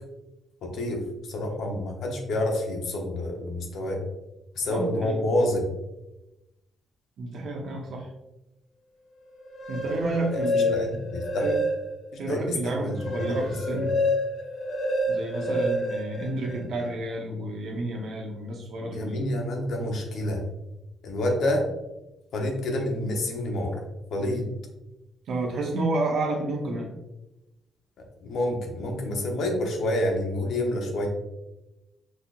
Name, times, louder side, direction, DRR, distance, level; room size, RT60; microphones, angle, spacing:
voice 1, 0.6-4.0 4.6-5.7 10.3-11.5 12.1-13.4 13.7-13.9 18.9-20.4 21.0-21.7 22.3-23.8 24.1-24.5 28.2-31.1, left 1 dB, 70° left, 2 dB, 0.8 m, -28 dB
voice 2, 4.7-5.2 7.2-8.1 9.7-10.9 11.4-11.6 12.2-14.0 15.1-19.2 25.3-26.9, right 2 dB, 65° right, 0 dB, 0.9 m, -30 dB
sound 1, 9.4-12.1 12.6-16.9, left 1 dB, 50° left, 0.8 m, -28 dB
4.3 x 2.8 x 2.5 m, 0.96 s
cardioid pair, 90°, 0 cm